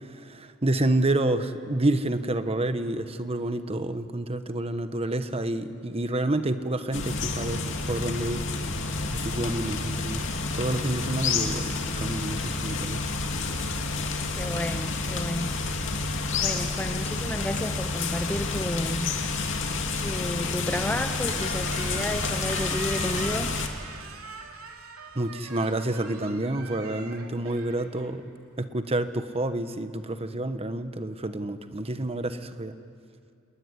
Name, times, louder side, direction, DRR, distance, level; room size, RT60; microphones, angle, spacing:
voice 1, 0.0-8.4 9.1-10.3 10.5-13.0 25.1-32.8, right 1 dB, 30° right, 10 dB, 1.2 m, -29 dB
sound 1, 6.9-23.7, left 3 dB, 60° left, 2.5 m, -29 dB
voice 2, 14.3-15.5 16.4-19.1 20.0-23.5, left 1 dB, 5° left, 8 dB, 0.7 m, -32 dB
Squeak, 20.5-28.7, right 4 dB, 85° right, 2.9 m, -42 dB
27.5 x 20.0 x 10.0 m, 2.3 s
head